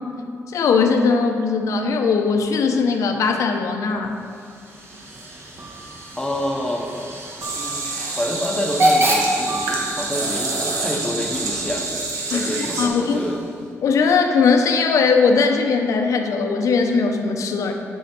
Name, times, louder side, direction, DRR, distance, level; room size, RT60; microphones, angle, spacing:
voice 1, 0.5-4.1 12.3-12.5 12.8-13.2 13.8-17.7, left 5 dB, 75° left, 4 dB, 0.8 m, -19 dB
sound 1, 2.3-2.4 3.9-4.3 5.6-6.1 7.4-8.2 9.5-10.4, right 5 dB, 70° right, 2.0 m, -37 dB
Hiss / Train / Alarm, 4.1-13.7, right 1 dB, 50° right, 1.6 m, -28 dB
voice 2, 6.1-6.9 7.6-13.4, left 1 dB, 10° left, 1 dB, 0.9 m, -28 dB
sound 2, 7.4-12.9, right 3 dB, 85° right, 1.5 m, -27 dB
10.0 x 5.6 x 4.4 m, 2.4 s
cardioid pair, 120°, 5 cm